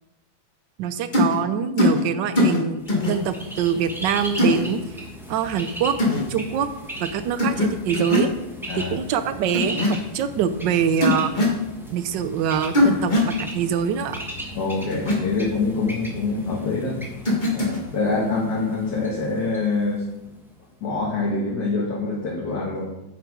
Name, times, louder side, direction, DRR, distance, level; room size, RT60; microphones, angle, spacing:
voice 1, 0.8-4.8 5.3-5.9 6.3-6.7 7.0-8.3 8.9-11.3 11.9-14.2, right 8 dB, 70° right, 11 dB, 1.2 m, -24 dB
sound 1, 1.1-1.3 1.8-2.0 2.3-2.6 2.9-3.1 4.4-4.6 6.0-6.2 7.4-7.7 7.9-8.3 9.5-9.9 11.0-11.6 12.7-13.3 14.9-15.1 17.2-17.8, left 1 dB, 25° left, 1.7 m, -20 dB
Bird, 2.8-20.6, equal, ahead, 0.8 m, -37 dB
voice 2, 14.5-17.0 17.5-20.1 20.8-22.9, left 3 dB, 55° left, -5 dB, 2.0 m, -25 dB
8.1 x 6.0 x 4.9 m, 0.94 s
omnidirectional pair, 2.2 m